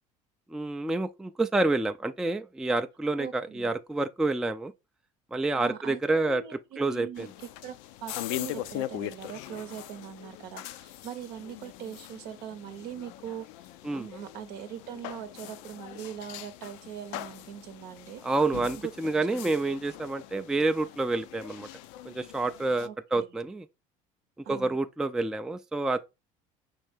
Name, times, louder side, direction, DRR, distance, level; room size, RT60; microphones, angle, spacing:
voice 1, 0.5-4.7 5.3-6.4 6.8-7.3 13.8-14.1 18.2-21.7 22.1-23.7 24.5-26.0, right 2 dB, 5° right, 0.3 m, -28 dB
voice 2, 3.2-3.7 5.5-7.3 7.6-7.8 8.0-13.5 13.9-18.2 18.7-19.5 22.8-23.4 24.4-24.8, right 9 dB, 70° right, 0.7 m, -41 dB
sound 1, 7.2-22.9, left 14 dB, 75° left, 0.4 m, -41 dB
5.5 x 2.7 x 3.4 m
supercardioid pair, 90°, 17 cm